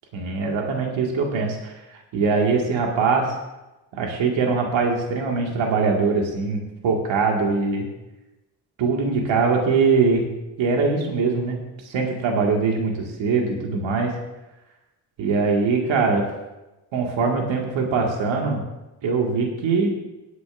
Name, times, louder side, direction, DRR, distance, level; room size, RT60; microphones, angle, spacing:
voice 1, 0.1-3.3 3.9-7.9 8.8-10.3 10.6-11.6 11.8-14.1 15.2-16.3 16.9-18.6 19.0-20.0, right 4 dB, 75° right, 0 dB, 2.1 m, -22 dB
18.0 x 9.4 x 2.6 m, 1.0 s
hypercardioid pair, 50°, 47 cm